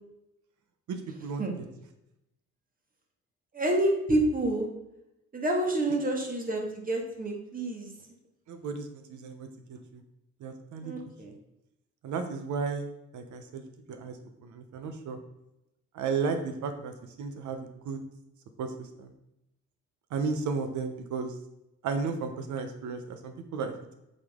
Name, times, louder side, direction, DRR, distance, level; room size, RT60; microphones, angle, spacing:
voice 1, 0.9-1.4 8.5-10.0 10.4-11.0 12.0-12.9 13.1-14.2 14.4-15.2 15.9-18.0 18.6-19.1 20.1-21.3 21.8-23.9, right 5 dB, 75° right, 7 dB, 1.0 m, -34 dB
voice 2, 3.5-4.7 5.3-7.9 10.8-11.3, right 1 dB, 30° right, 1 dB, 1.9 m, -28 dB
8.1 x 4.2 x 3.7 m, 0.87 s
cardioid pair, 90°, 30 cm